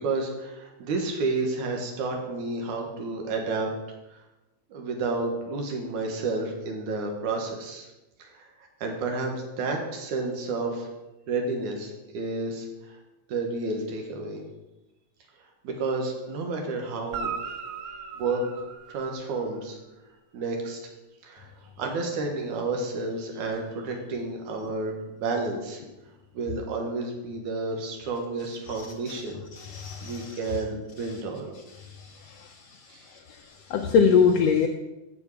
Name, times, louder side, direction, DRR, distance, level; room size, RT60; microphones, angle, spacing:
voice 1, 0.0-3.7 4.1-4.2 4.7-7.9 8.2-8.5 8.8-10.9 11.3-13.0 13.3-14.4 15.6-17.3 18.1-18.4 18.9-19.8 20.3-20.8 21.2-21.5 21.8-24.9 25.2-25.8 26.3-29.4 30.0-31.5 32.9-33.0, right 3 dB, 90° right, 2 dB, 2.9 m, -30 dB
Guitar, 17.1-19.6 23.5-23.6, right 6 dB, 65° right, 1.5 m, -37 dB
voice 2, 29.5-30.3 32.0-32.5 33.1-33.2 33.7-34.7, left 6 dB, 75° left, 4 dB, 1.5 m, -23 dB
14.5 x 5.1 x 4.8 m, 1.0 s
omnidirectional pair, 3.4 m